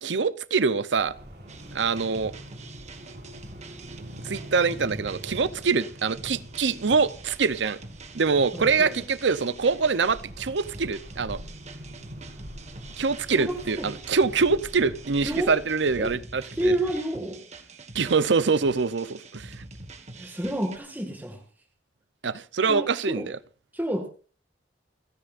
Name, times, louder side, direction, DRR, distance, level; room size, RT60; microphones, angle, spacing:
voice 1, 0.0-1.1 1.7-2.3 4.2-7.8 8.1-11.4 13.0-16.7 17.9-19.5 22.2-23.2, right 4 dB, 85° right, 0.7 m, -24 dB
sound 1, 0.9-16.1, equal, 65° right, 5.4 m, -44 dB
sound 2, 1.5-20.8, right 3 dB, 40° right, 1.6 m, -45 dB
voice 2, 8.5-9.0 13.3-14.0 15.2-15.5 16.0-16.1 16.5-17.4 20.2-21.4 22.6-23.3 23.7-24.1, right 1 dB, 10° right, 1.9 m, -29 dB
29.0 x 10.0 x 2.5 m
head